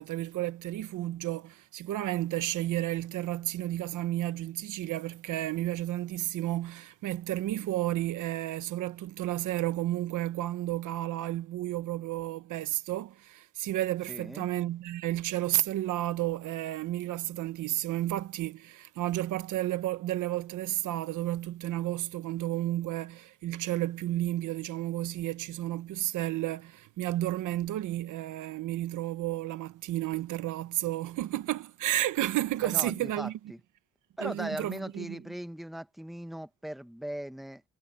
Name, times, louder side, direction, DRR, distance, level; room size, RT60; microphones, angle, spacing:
voice 1, 0.0-33.4 34.2-35.2, right 14 dB, 80° right, 1.2 m, -32 dB
voice 2, 14.1-14.5 32.6-33.6 34.2-37.6, equal, ahead, 1.3 m, -39 dB
cardioid pair, 90°, 30 cm